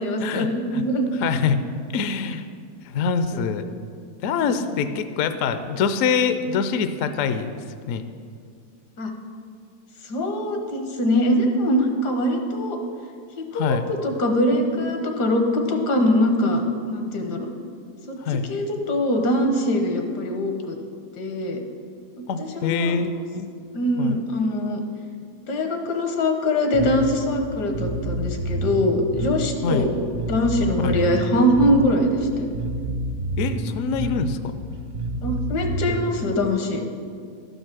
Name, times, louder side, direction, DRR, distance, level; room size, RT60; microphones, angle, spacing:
voice 1, 0.0-1.1 3.3-3.5 4.4-4.6 9.0-9.1 10.0-12.8 13.4-16.6 16.9-17.5 18.1-18.2 18.4-20.8 21.1-21.6 22.4-23.0 23.7-24.8 25.5-30.0 30.3-32.5 35.2-36.8, left 1 dB, 85° left, 4 dB, 1.7 m, -23 dB
voice 2, 1.2-1.6 1.9-2.5 2.9-3.7 4.2-7.5 7.9-8.0 13.5-13.9 18.2-18.5 22.3-23.5 24.0-24.2 29.6-29.9 30.8-30.9 33.4-34.4, left 6 dB, 70° left, 9 dB, 0.8 m, -24 dB
Bass guitar, 26.7-36.2, right 1 dB, 55° right, 0.4 m, -29 dB
12.0 x 5.5 x 6.0 m, 2.2 s
omnidirectional pair, 1.7 m